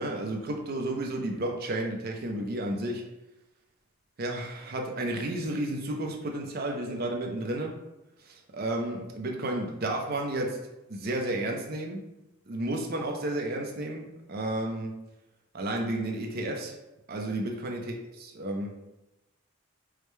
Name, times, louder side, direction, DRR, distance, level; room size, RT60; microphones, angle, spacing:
voice 1, 0.0-3.0 4.2-7.8 8.2-10.6 10.9-12.1 12.5-15.0 15.5-16.7 17.1-18.8, right 1 dB, 45° right, 1 dB, 0.5 m, -32 dB
4.8 x 2.1 x 3.2 m, 0.97 s
head